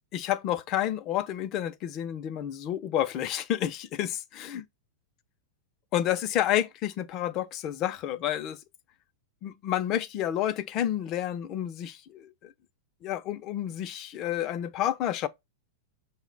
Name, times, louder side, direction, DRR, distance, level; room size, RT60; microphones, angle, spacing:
voice 1, 0.1-4.6 5.9-8.6 9.4-12.5 13.0-15.3, left 11 dB, 35° left, 0.4 m, -30 dB
5.7 x 2.1 x 3.7 m
supercardioid pair, 145°, 0 cm